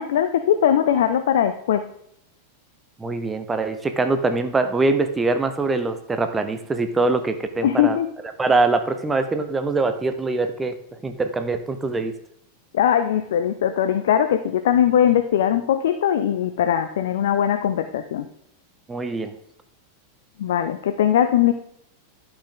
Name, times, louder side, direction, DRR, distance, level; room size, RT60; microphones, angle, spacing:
voice 1, 0.0-1.8 7.6-8.1 12.7-18.3 20.4-21.5, left 10 dB, 60° left, 9 dB, 0.6 m, -20 dB
voice 2, 3.0-8.0 8.4-10.7 11.0-12.1 18.9-19.3, right 3 dB, 15° right, 8 dB, 0.8 m, -23 dB
11.5 x 6.1 x 3.8 m, 0.76 s
figure-of-eight pair, 90°, 0 cm